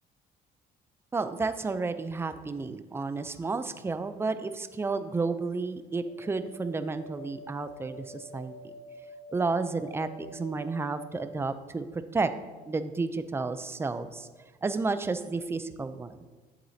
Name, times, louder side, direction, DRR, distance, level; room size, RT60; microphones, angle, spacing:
voice 1, 1.1-8.7 9.3-12.3 12.7-14.3 14.6-16.2, right 3 dB, 15° right, 11 dB, 0.4 m, -31 dB
sound 1, 6.1-11.4, equal, 85° left, 1.1 m, -47 dB
8.7 x 7.2 x 2.7 m, 1.3 s
cardioid pair, 110°, 17 cm